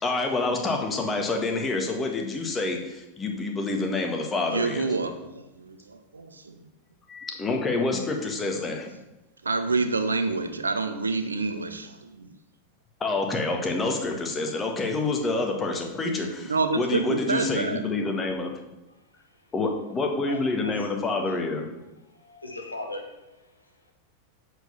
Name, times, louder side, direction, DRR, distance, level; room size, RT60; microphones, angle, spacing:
voice 1, 0.0-4.9 7.1-8.9 13.0-18.5 19.5-21.7, left 3 dB, 15° left, 2 dB, 1.6 m, -27 dB
voice 2, 4.5-6.7 9.4-12.3 16.5-17.8, right 3 dB, 75° right, 8 dB, 0.8 m, -28 dB
voice 3, 20.2-20.9 22.1-23.3, left 2 dB, 80° left, 2 dB, 1.5 m, -38 dB
7.9 x 4.8 x 6.9 m, 0.98 s
figure-of-eight pair, 90°, 0 cm